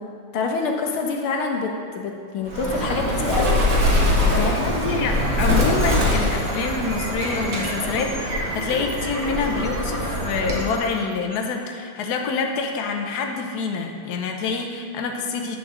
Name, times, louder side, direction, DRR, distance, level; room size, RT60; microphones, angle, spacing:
voice 1, 0.0-3.6 4.2-4.8, left 3 dB, 85° left, 1 dB, 1.9 m, -26 dB
Bird, 2.5-10.7, left 1 dB, 45° right, 1.8 m, -23 dB
voice 2, 4.4-15.6, left 4 dB, 60° left, 2 dB, 1.2 m, -27 dB
sound 1, 5.2-12.1, right 1 dB, 25° right, 0.8 m, -36 dB
9.5 x 4.9 x 6.3 m, 2.2 s
omnidirectional pair, 2.3 m